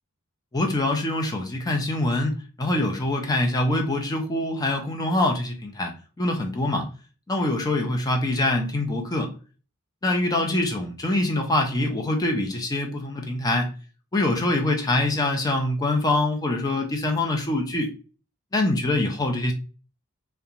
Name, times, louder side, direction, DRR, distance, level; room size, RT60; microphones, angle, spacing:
voice 1, 0.5-6.9 7.3-9.3 10.0-13.7 14.1-17.9 18.5-19.5, left 2 dB, 20° left, 2 dB, 0.4 m, -24 dB
2.7 x 2.2 x 2.4 m, 0.35 s
head